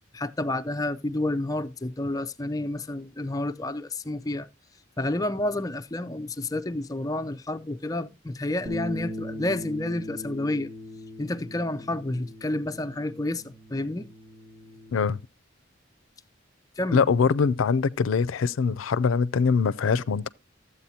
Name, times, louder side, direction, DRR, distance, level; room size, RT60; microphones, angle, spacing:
voice 1, 0.1-4.5 5.0-10.7 11.2-14.1 16.8-17.1, left 1 dB, 20° left, 0.5 m, -30 dB
sound 1, 8.6-14.9, left 1 dB, 75° right, 2.4 m, -39 dB
voice 2, 16.9-20.3, left 5 dB, 85° left, 0.4 m, -23 dB
13.5 x 8.2 x 2.7 m
head